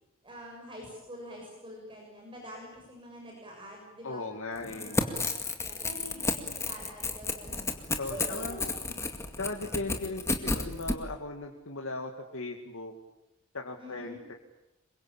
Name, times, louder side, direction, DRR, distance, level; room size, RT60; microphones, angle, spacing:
voice 1, 0.2-4.2 4.6-5.3 5.6-7.7 8.1-8.6 9.5-9.6 13.8-14.2, equal, 25° right, -1 dB, 6.9 m, -46 dB
voice 2, 4.0-5.0 8.0-8.6 9.4-12.9 13.5-14.3, left 2 dB, 75° left, 2 dB, 2.3 m, -37 dB
Crackle / Tearing, 4.6-11.0, left 2 dB, 15° left, 2.2 m, -32 dB
27.5 x 23.5 x 8.8 m, 0.90 s
head